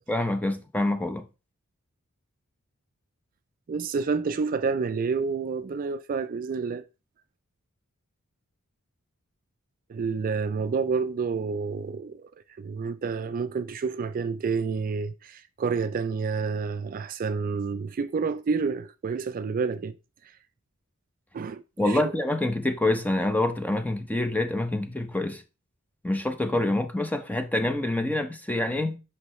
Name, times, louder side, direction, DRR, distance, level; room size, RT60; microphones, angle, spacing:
voice 1, 0.1-1.2 21.8-25.4 26.0-29.0, left 1 dB, 10° left, 0.6 m, -26 dB
voice 2, 3.7-6.9 9.9-12.3 12.6-20.0 21.3-22.1, right 5 dB, 40° right, 0.3 m, -29 dB
8.2 x 5.5 x 3.1 m
head